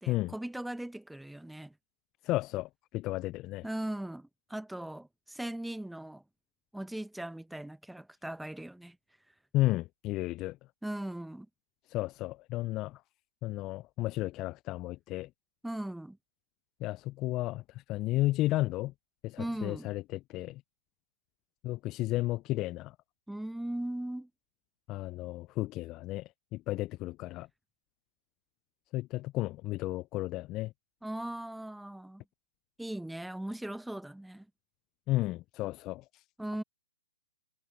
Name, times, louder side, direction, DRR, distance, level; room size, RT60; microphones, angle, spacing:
voice 1, 0.0-1.7 3.6-6.2 6.7-9.0 10.8-11.5 15.6-16.2 19.4-19.9 23.3-24.3 31.0-32.2 32.8-34.5 36.4-36.6, right 1 dB, ahead, 0.8 m, -39 dB
voice 2, 2.2-3.7 9.5-10.6 11.9-13.0 13.4-15.3 16.8-18.9 19.2-20.6 21.6-23.0 24.9-27.5 28.9-30.7 35.1-36.2, left 17 dB, 25° left, 0.4 m, -33 dB
hypercardioid pair, 130°, 0 cm